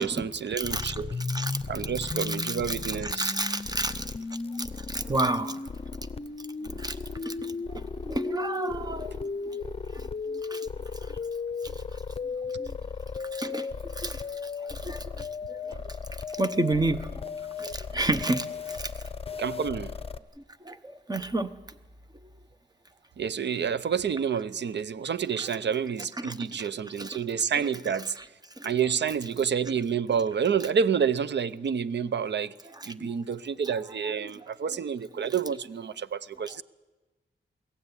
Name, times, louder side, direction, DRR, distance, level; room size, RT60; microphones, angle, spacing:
voice 1, 0.0-1.2 1.7-3.3 19.4-19.9 23.2-28.2 28.6-32.5 32.9-36.6, right 7 dB, 70° right, 0.7 m, -29 dB
sound 1, 0.6-20.2, left 4 dB, 30° left, 0.7 m, -35 dB
voice 2, 0.6-0.9 1.3-1.6 2.3-2.8 3.0-4.1 4.6-5.6 6.6-9.3 9.9-10.0 10.3-10.7 11.0-11.2 12.6-12.8 13.3-13.7 14.0-15.9 16.3-17.1 17.6-18.9 20.6-21.5 26.2-26.7 27.0-27.2 28.6-28.7 33.0-33.1, right 2 dB, 20° right, 1.0 m, -31 dB
22.5 x 16.0 x 9.8 m
wide cardioid pair, 145°, 19 cm